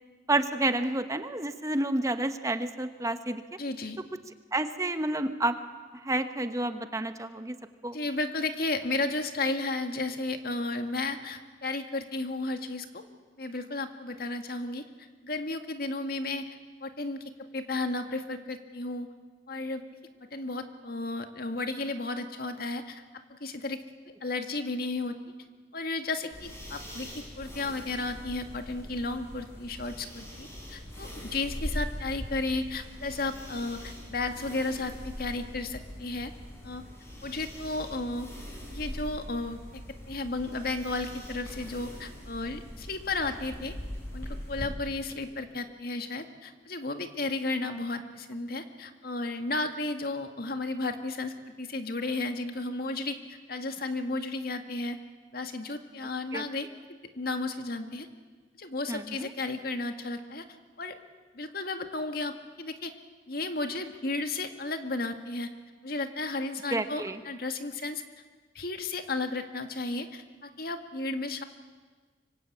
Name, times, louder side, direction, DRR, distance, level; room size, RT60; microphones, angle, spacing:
voice 1, 0.3-3.4 4.5-5.6 6.0-7.6 7.8-8.0 56.3-56.4 58.9-59.3 66.7-67.2, right 2 dB, 20° right, 9 dB, 1.1 m, -29 dB
voice 2, 3.6-4.0 7.9-13.0 13.4-14.8 15.2-16.5 16.8-19.1 19.5-19.8 20.3-23.0 23.3-23.8 24.1-25.2 25.7-27.1 27.4-36.3 36.6-36.8 37.2-38.3 38.7-39.6 40.1-43.8 44.1-55.0 55.3-56.7 57.2-58.1 58.6-60.5 60.8-61.0 61.3-63.0 63.3-65.5 65.8-68.0 68.6-71.4, left 2 dB, 60° left, 7 dB, 2.0 m, -33 dB
sound 1, 26.3-44.7, equal, 15° left, 6.7 m, -42 dB
25.0 x 24.5 x 8.6 m, 1.4 s
head